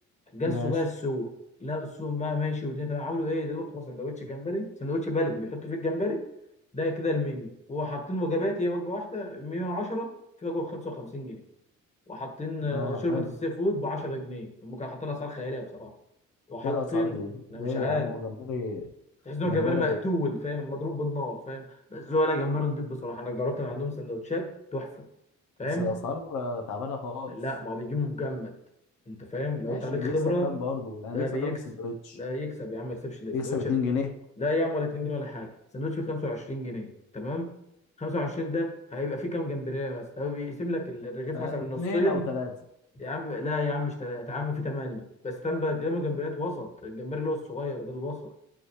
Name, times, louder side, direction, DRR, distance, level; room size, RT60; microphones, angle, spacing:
voice 1, 0.3-1.3 1.6-6.2 6.7-10.1 10.4-11.4 12.1-15.9 16.5-17.2 17.5-18.1 19.2-25.0 25.6-25.9 27.3-28.5 29.1-30.5 31.1-31.6 32.1-33.7 34.4-37.5 38.0-42.3 43.0-48.3, left 1 dB, 25° left, 2 dB, 1.5 m, -31 dB
voice 2, 12.7-13.3 16.6-18.9 19.4-20.0 25.8-27.4 29.7-30.1 30.4-32.2 33.3-34.1 41.3-42.5, left 4 dB, 80° left, 3 dB, 1.0 m, -32 dB
7.9 x 6.1 x 3.2 m, 0.82 s
cardioid pair, 90°, 30 cm